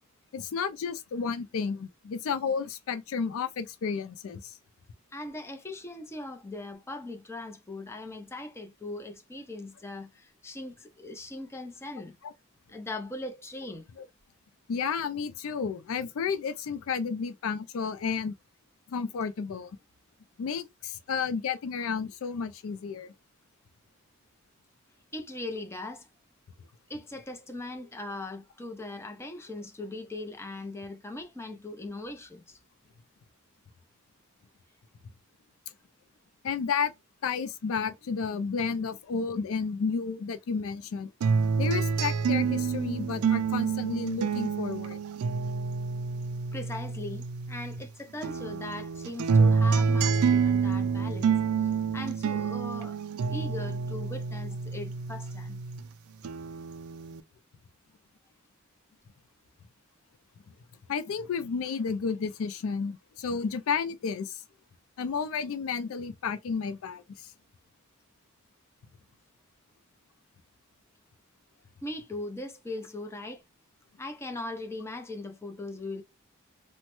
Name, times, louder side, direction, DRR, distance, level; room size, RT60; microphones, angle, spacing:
voice 1, 0.3-4.6 12.2-12.3 14.0-14.1 14.7-18.3 18.9-19.7 20.4-23.1 36.4-36.9 37.2-41.1 41.6-45.0 60.9-64.4 65.0-67.3, left 5 dB, 70° left, 0.4 m, -32 dB
voice 2, 5.1-12.1 12.7-13.8 25.1-26.1 26.9-32.6 46.5-53.0 53.3-55.6 71.8-73.4 74.0-76.0, left 2 dB, 10° left, 0.5 m, -39 dB
sound 1, 41.2-47.9 48.2-55.9 56.2-57.2, right 5 dB, 85° right, 0.3 m, -28 dB
3.0 x 2.1 x 3.0 m
head